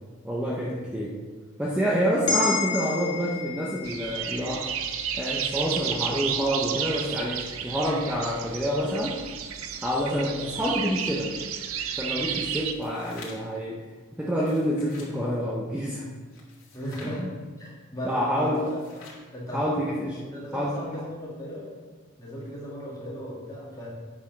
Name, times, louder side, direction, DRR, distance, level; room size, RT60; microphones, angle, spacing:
voice 1, 0.2-1.2 1.6-4.7 5.1-9.2 9.8-11.3 11.9-13.8 14.2-16.1 17.0-17.3 18.0-18.7 19.5-20.2 20.5-20.8, equal, 5° right, -4 dB, 0.7 m, -27 dB
sound 1, 2.3-6.8 7.2-7.3, left 4 dB, 55° left, 1.5 m, -33 dB
sound 2, 3.8-12.7, right 8 dB, 80° right, 0.6 m, -32 dB
sound 3, 12.6-13.6 14.3-15.2 16.3-17.2 18.4-19.3, left 3 dB, 80° left, 2.1 m, -48 dB
voice 2, 16.7-17.2 17.6-18.8 19.3-21.7 22.2-23.9, equal, 15° left, -6 dB, 2.3 m, -36 dB
8.7 x 5.5 x 5.3 m, 1.4 s
head